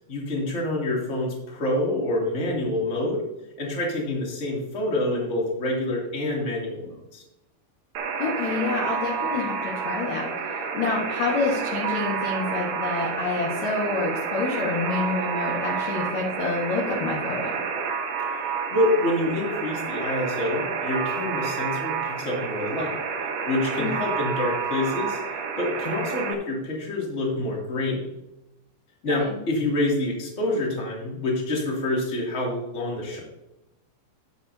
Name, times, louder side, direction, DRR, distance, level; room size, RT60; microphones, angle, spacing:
voice 1, 0.1-3.2 3.6-7.2 18.4-23.0 23.4-25.2 25.6-28.1 29.0-33.2, left 1 dB, 25° left, -3 dB, 1.6 m, -27 dB
Alarm, 7.9-26.3, right 6 dB, 75° right, 1.8 m, -29 dB
voice 2, 8.2-10.3 10.7-17.6 23.8-23.9 29.2-29.3, left 3 dB, 65° left, -2 dB, 1.8 m, -28 dB
12.5 x 8.8 x 2.8 m, 0.93 s
omnidirectional pair, 5.8 m